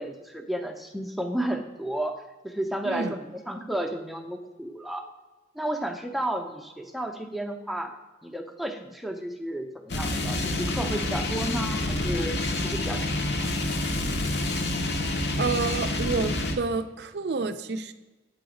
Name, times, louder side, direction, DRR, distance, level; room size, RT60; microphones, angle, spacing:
voice 1, 0.0-2.2 2.4-5.1 5.5-7.9 8.2-13.5, right 1 dB, ahead, 4 dB, 0.5 m, -32 dB
sound 1, 9.9-16.6, left 2 dB, 60° left, 0.7 m, -28 dB
voice 2, 15.4-17.9, right 4 dB, 60° right, 11 dB, 0.4 m, -29 dB
8.4 x 3.9 x 5.0 m, 1.1 s
head